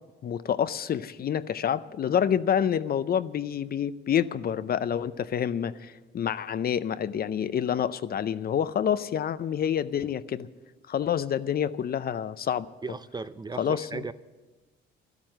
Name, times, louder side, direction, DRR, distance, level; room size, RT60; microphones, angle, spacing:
voice 1, 0.2-10.5 10.9-12.7 13.6-14.0, left 9 dB, 50° left, 15 dB, 0.6 m, -28 dB
voice 2, 12.8-14.1, right 4 dB, 20° right, 14 dB, 0.5 m, -36 dB
12.5 x 12.0 x 7.7 m, 1.3 s
cardioid pair, 90°, 20 cm